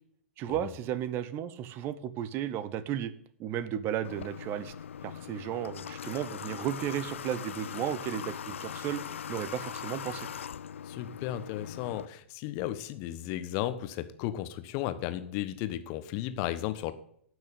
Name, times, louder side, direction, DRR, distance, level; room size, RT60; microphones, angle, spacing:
voice 1, 0.4-3.1 3.4-4.7 5.0-9.0 9.3-10.3, right 10 dB, 30° right, 16 dB, 0.9 m, -34 dB
Water / Water tap faucet, 4.0-12.1, left 8 dB, 65° left, 0.4 m, -40 dB
voice 2, 10.8-16.9, left 13 dB, 35° left, 11 dB, 1.1 m, -34 dB
12.0 x 6.3 x 9.1 m, 0.65 s
figure-of-eight pair, 105°, 7 cm